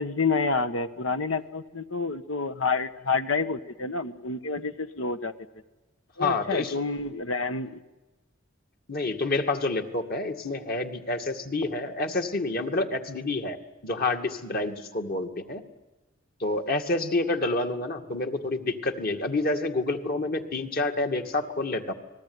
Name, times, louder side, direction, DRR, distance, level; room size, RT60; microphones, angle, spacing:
voice 1, 0.0-5.3 6.2-7.8, left 4 dB, 85° left, 10 dB, 1.4 m, -28 dB
voice 2, 6.2-6.7 8.9-13.6 13.8-15.6 16.4-21.9, left 2 dB, 50° left, 5 dB, 2.2 m, -28 dB
29.5 x 20.5 x 9.6 m, 1.1 s
head